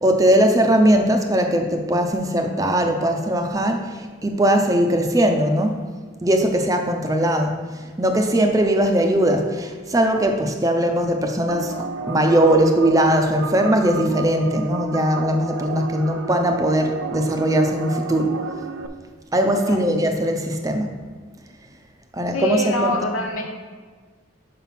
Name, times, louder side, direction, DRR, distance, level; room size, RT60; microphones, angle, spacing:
voice 1, 0.0-5.8 6.2-7.6 8.0-18.4 19.3-20.9 22.1-22.9, right 1 dB, 15° right, 4 dB, 0.5 m, -20 dB
sound 1, 11.5-18.9, right 4 dB, 85° right, 0.5 m, -31 dB
voice 2, 22.3-23.4, left 1 dB, 85° left, 1 dB, 1.2 m, -25 dB
5.6 x 4.9 x 5.8 m, 1.5 s
head